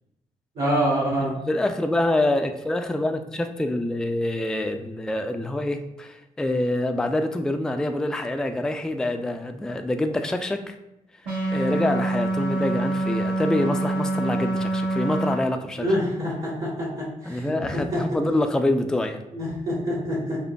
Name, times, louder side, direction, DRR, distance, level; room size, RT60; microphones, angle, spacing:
voice 1, 0.5-1.3 15.8-16.9 17.2-17.5 17.9-18.0 19.3-20.4, equal, 60° right, -5 dB, 1.2 m, -25 dB
voice 2, 1.5-10.7 11.5-15.9 17.2-19.2, left 1 dB, 5° left, 6 dB, 0.3 m, -26 dB
sound 1, 11.2-15.3, right 2 dB, 85° right, 1.1 m, -25 dB
5.2 x 2.1 x 2.2 m, 0.90 s
hypercardioid pair, 40°, 17 cm